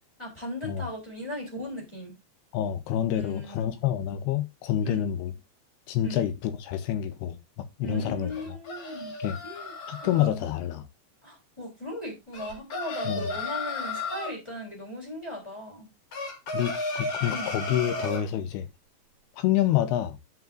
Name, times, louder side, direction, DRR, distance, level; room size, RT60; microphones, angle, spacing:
voice 1, 0.2-2.1 3.1-3.7 4.8-5.1 6.0-6.2 7.8-9.1 9.4-9.7 10.0-10.4 11.2-15.9 17.3-17.5, equal, 5° left, 2.9 m, -38 dB
voice 2, 2.5-5.3 5.9-8.3 9.2-9.4 9.9-10.8 13.0-13.3 16.5-18.7 19.4-20.2, left 11 dB, 75° left, 2.6 m, -28 dB
sound 1, 8.3-10.3 12.3-14.3 16.1-18.2, left 2 dB, 50° left, 2.8 m, -33 dB
13.0 x 5.4 x 2.5 m
omnidirectional pair, 5.1 m